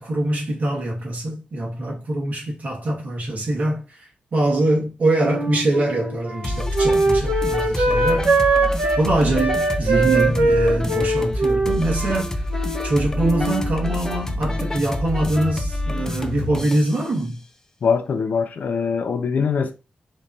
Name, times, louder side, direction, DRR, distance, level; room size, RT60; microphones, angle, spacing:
voice 1, 0.0-8.3 9.0-12.4 12.8-17.4, right 1 dB, 55° right, 1.9 m, -23 dB
Wind instrument woodwind instrument, 5.2-9.0 9.3-12.9 13.2-13.7, right 2 dB, 85° right, 1.2 m, -21 dB
sound 1, 6.4-17.0, left 1 dB, 20° left, 0.5 m, -27 dB
voice 2, 17.8-19.7, left 6 dB, 65° left, 0.6 m, -22 dB
5.2 x 3.1 x 2.8 m
wide cardioid pair, 130°, 3 cm